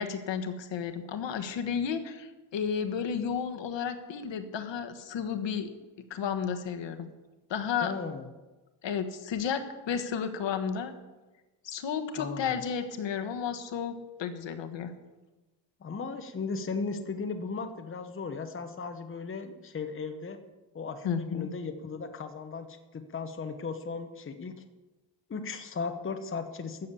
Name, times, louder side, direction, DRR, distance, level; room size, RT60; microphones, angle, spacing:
voice 1, 0.0-5.7 6.1-7.1 7.5-7.9 8.8-10.9 11.6-13.9 14.2-14.9 21.0-21.5, left 7 dB, 70° left, 7 dB, 1.4 m, -32 dB
voice 2, 7.8-8.3 12.2-12.6 15.8-20.4 20.7-24.6 25.3-26.9, left 4 dB, 25° left, 7 dB, 1.0 m, -36 dB
13.0 x 7.2 x 8.3 m, 1.2 s
cardioid pair, 140°, 46 cm